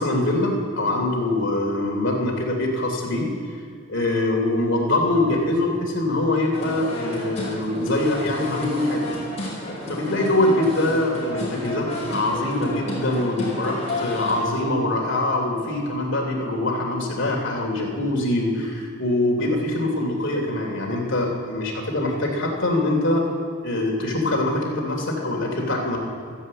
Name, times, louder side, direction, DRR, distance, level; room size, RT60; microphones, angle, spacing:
voice 1, 0.0-3.3 3.9-9.1 9.9-23.2 23.6-26.0, left 1 dB, 60° left, 0 dB, 3.0 m, -23 dB
sound 1, 6.5-14.4, left 1 dB, 30° left, 5.0 m, -32 dB
13.5 x 10.5 x 8.6 m, 2.1 s
head